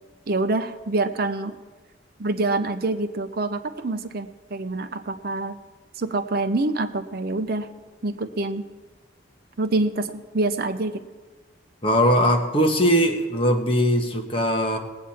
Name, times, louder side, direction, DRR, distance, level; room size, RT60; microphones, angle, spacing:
voice 1, 0.3-1.6 2.2-5.5 6.0-7.7 8.0-8.7 9.6-11.0, right 2 dB, 55° right, 9 dB, 0.7 m, -26 dB
voice 2, 11.8-14.8, equal, 30° left, 2 dB, 1.3 m, -20 dB
20.0 x 8.5 x 4.4 m, 1.4 s
head